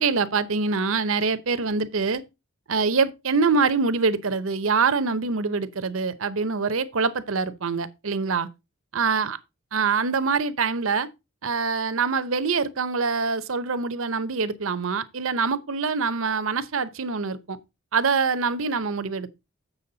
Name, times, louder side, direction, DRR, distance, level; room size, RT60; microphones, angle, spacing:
voice 1, 0.0-2.2 2.7-8.5 8.9-9.4 9.7-11.1 11.4-17.6 17.9-19.3, right 4 dB, 65° right, 0.8 m, -24 dB
7.3 x 7.1 x 3.9 m
head